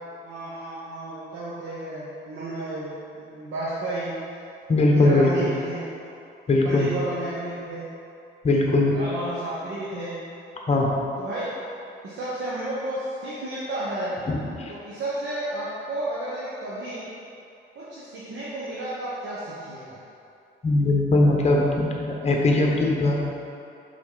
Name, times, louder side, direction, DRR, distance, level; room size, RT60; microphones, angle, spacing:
voice 1, 0.2-4.2 4.9-6.0 6.6-7.9 8.9-10.2 11.2-11.5 12.0-14.3 14.7-17.1 17.7-20.0, right 1 dB, 70° right, -9 dB, 1.2 m, -32 dB
voice 2, 4.7-5.5 6.5-6.9 8.4-8.9 10.7-10.9 14.3-14.7 20.6-23.1, left 2 dB, 35° left, -1 dB, 1.0 m, -20 dB
6.0 x 4.0 x 4.0 m, 2.6 s
cardioid pair, 90°, 20 cm